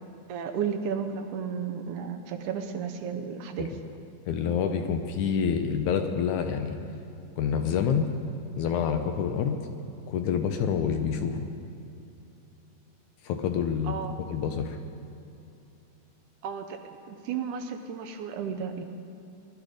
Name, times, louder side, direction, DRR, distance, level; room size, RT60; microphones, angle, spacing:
voice 1, 0.3-3.7 13.9-14.2 16.4-16.8 17.1-18.8, right 7 dB, 75° right, 6 dB, 2.1 m, -33 dB
voice 2, 4.3-6.8 7.4-8.1 8.6-9.6 10.1-11.5 13.2-14.8, left 7 dB, 75° left, 6 dB, 1.9 m, -27 dB
20.0 x 12.0 x 5.0 m, 2.7 s
omnidirectional pair, 3.8 m